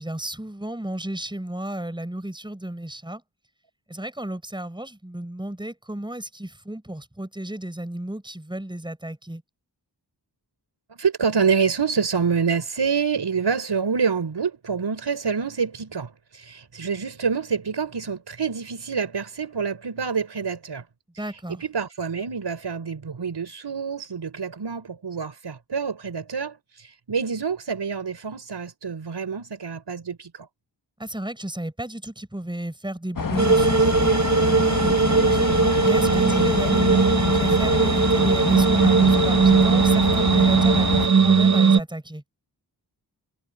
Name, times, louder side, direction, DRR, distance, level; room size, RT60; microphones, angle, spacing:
voice 1, 0.0-3.2 3.9-9.4 21.2-21.6 31.0-35.5 35.8-42.2, right 1 dB, 10° right, 5.0 m, -33 dB
voice 2, 10.9-20.8 21.6-30.5, right 5 dB, 80° right, 5.9 m, -27 dB
sound 1, 33.2-41.1, left 5 dB, 50° left, 1.4 m, -26 dB
sound 2, 33.4-41.8, right 5 dB, 40° right, 0.9 m, -19 dB
wide cardioid pair, 95°, 41 cm